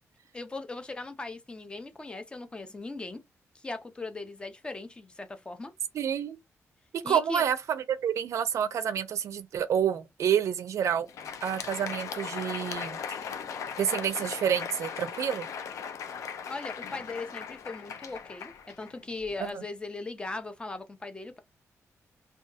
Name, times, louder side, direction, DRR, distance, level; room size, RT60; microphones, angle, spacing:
voice 1, 0.3-3.2 3.5-5.7 7.0-7.4 16.5-21.4, left 3 dB, 15° left, 0.4 m, -39 dB
voice 2, 5.9-6.4 6.9-11.1 11.4-13.0 13.8-15.5 19.4-19.6, right 8 dB, 65° right, 0.4 m, -28 dB
Crowd, 11.0-19.4, left 7 dB, 75° left, 0.4 m, -38 dB
2.7 x 2.3 x 2.3 m
wide cardioid pair, 155°, 6 cm